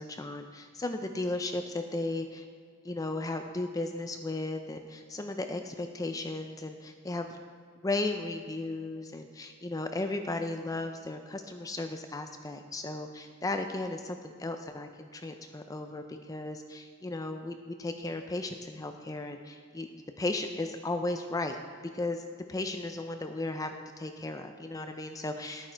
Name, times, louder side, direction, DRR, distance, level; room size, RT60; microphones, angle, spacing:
voice 1, 0.0-2.4 2.8-7.4 7.8-19.9 20.2-21.6 21.9-22.2 22.5-25.7, left 2 dB, 15° left, 6 dB, 0.4 m, -35 dB
11.0 x 8.6 x 4.5 m, 2.1 s
head